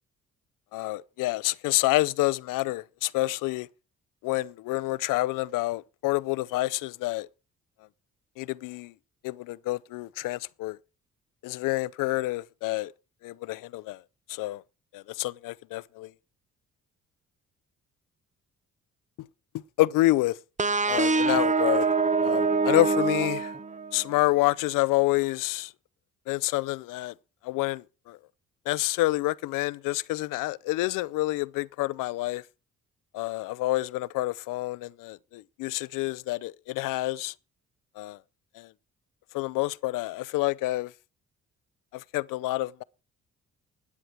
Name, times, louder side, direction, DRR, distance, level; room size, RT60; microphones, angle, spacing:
voice 1, 0.7-3.7 4.2-7.3 8.4-8.9 9.2-10.8 11.4-12.9 13.2-14.0 14.3-14.6 14.9-16.1 19.2-19.3 19.8-20.4 20.9-21.9 22.2-23.5 23.9-25.7 26.3-27.1 27.4-28.2 28.7-32.4 33.1-37.3 38.0-38.2 38.6-38.7 39.3-40.9 41.9-42.8, left 18 dB, 90° left, 0.6 m, -28 dB
sound 1, 20.6-24.1, right 4 dB, 25° right, 0.8 m, -25 dB
14.0 x 9.8 x 4.4 m
cardioid pair, 70°, 31 cm